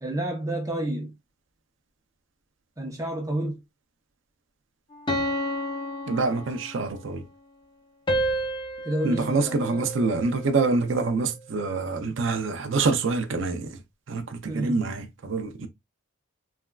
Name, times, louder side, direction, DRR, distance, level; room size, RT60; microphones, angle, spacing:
voice 1, 0.0-1.1 2.8-3.6 8.8-9.8 14.5-14.8, right 1 dB, 15° right, 0.7 m, -30 dB
sound 1, 5.1-7.0 8.1-10.5, equal, 25° left, 0.5 m, -30 dB
voice 2, 6.1-7.3 9.0-13.8 14.1-15.7, right 3 dB, 60° right, 0.5 m, -26 dB
3.3 x 2.3 x 2.2 m
head